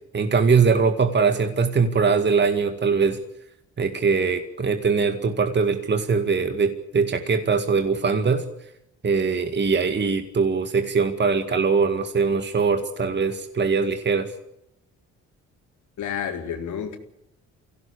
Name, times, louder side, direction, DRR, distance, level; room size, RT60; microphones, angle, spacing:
voice 1, 0.1-3.2 3.8-8.4 9.0-14.3, right 5 dB, 35° right, 2.0 m, -22 dB
voice 2, 16.0-17.0, left 8 dB, 75° left, 4.1 m, -30 dB
24.0 x 17.0 x 8.6 m
cardioid pair, 90°, 30 cm